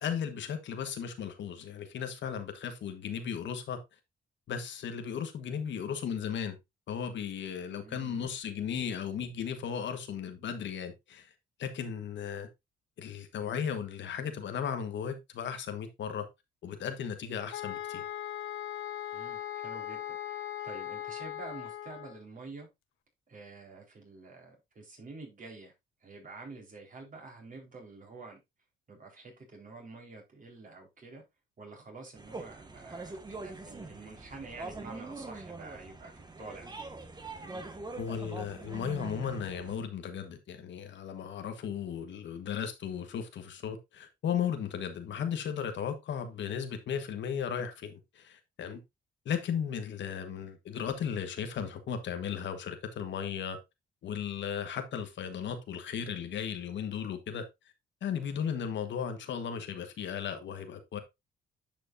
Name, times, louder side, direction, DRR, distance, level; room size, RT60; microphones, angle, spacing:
voice 1, 0.0-3.8 4.5-6.6 6.9-11.3 11.6-12.5 13.0-16.3 16.6-18.0 38.0-48.8 49.2-53.6 54.0-57.4 58.0-61.0, left 7 dB, 65° left, 1.4 m, -36 dB
voice 2, 7.6-8.3 19.1-22.7 23.3-25.7 26.0-28.4 28.9-31.2 31.6-36.1 36.4-36.7 37.3-37.7, right 3 dB, 40° right, 4.1 m, -48 dB
sound 1, 17.5-22.2, left 11 dB, 85° left, 0.9 m, -39 dB
sound 2, 32.2-39.8, right 3 dB, 20° right, 1.5 m, -43 dB
10.5 x 5.1 x 2.6 m
cardioid pair, 90°, 20 cm